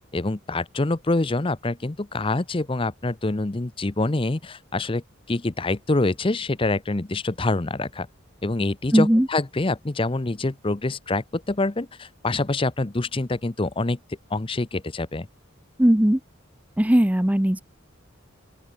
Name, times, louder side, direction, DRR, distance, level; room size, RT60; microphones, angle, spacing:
voice 1, 0.1-5.0 5.3-8.1 8.4-14.0 14.3-15.3, left 2 dB, 25° left, 0.7 m, -26 dB
voice 2, 8.9-9.3 15.8-16.2 16.8-17.6, equal, 5° right, 0.6 m, -18 dB
open air
head